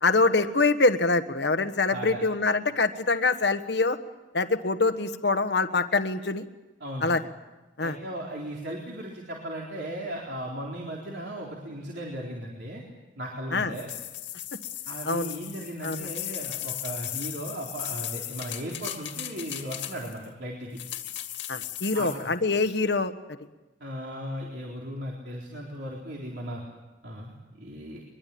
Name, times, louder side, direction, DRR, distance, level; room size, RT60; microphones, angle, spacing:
voice 1, 0.0-4.0 4.3-6.4 7.0-7.2 7.8-8.0 13.5-13.7 15.0-15.3 15.8-16.1 21.5-23.1, left 3 dB, 65° left, 9 dB, 1.4 m, -24 dB
voice 2, 1.9-2.2 6.8-7.1 7.8-12.8 13.2-13.9 14.9-20.8 21.9-22.3 23.8-26.6 27.0-28.0, equal, 65° right, -2 dB, 4.0 m, -36 dB
sound 1, 13.7-20.3 20.8-22.3, left 12 dB, 80° left, 2.4 m, -37 dB
23.0 x 23.0 x 8.6 m, 1.1 s
head